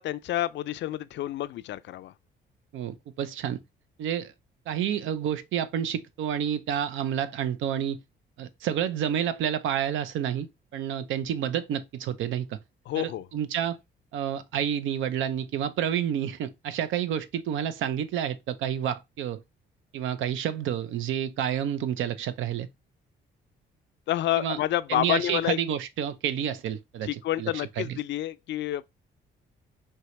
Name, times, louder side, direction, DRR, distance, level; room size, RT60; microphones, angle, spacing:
voice 1, 0.0-2.1 12.9-13.3 24.1-25.6 27.0-28.8, left 13 dB, 65° left, 0.4 m, -29 dB
voice 2, 2.7-3.6 4.0-4.3 4.7-8.0 8.4-10.5 10.7-12.6 13.0-13.8 14.1-19.4 19.9-22.7 24.4-24.6 24.9-27.5 27.8-28.0, right 9 dB, 80° right, 0.6 m, -29 dB
4.6 x 2.9 x 3.1 m
cardioid pair, 90°, 20 cm